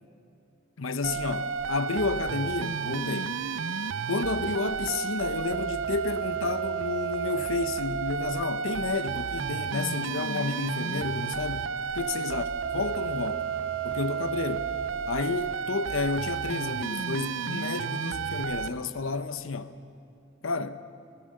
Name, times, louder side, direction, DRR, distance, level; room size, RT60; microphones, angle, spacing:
voice 1, 0.8-3.4 4.1-11.7 11.9-12.4 12.7-13.5 13.8-14.7 15.0-19.7 20.4-20.8, left 3 dB, 85° left, 0.9 m, -31 dB
sound 1, 1.0-18.7, right 6 dB, 70° right, 0.6 m, -32 dB
25.5 x 17.5 x 6.5 m
head